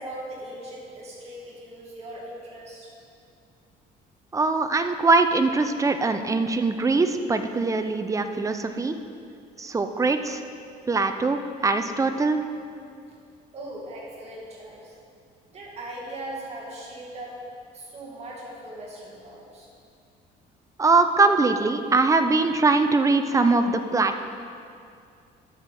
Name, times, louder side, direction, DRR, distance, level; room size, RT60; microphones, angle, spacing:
voice 1, 0.0-2.9 13.5-14.9 15.5-17.4 17.7-19.7, right 1 dB, 40° right, -4 dB, 2.2 m, -39 dB
voice 2, 4.3-9.0 9.6-10.4 10.9-12.4 20.8-24.2, right 3 dB, 20° right, 8 dB, 0.5 m, -22 dB
12.5 x 6.3 x 4.2 m, 2.4 s
cardioid pair, 110°, 17 cm